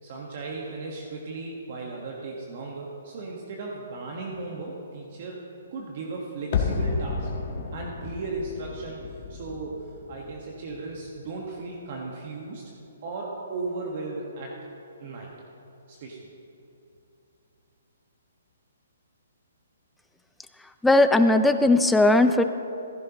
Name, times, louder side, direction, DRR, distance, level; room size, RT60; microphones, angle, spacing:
voice 1, 0.0-5.4 5.7-7.3 7.7-12.6 13.0-14.6 15.0-15.3 15.9-16.3, right 3 dB, 50° right, -1 dB, 1.3 m, -36 dB
sound 1, 6.5-11.5 11.7-11.8, left 5 dB, 45° left, 1.4 m, -32 dB
voice 2, 20.8-22.4, left 2 dB, 5° left, 8 dB, 0.4 m, -18 dB
15.0 x 10.5 x 3.0 m, 2.9 s
hypercardioid pair, 145°, 0 cm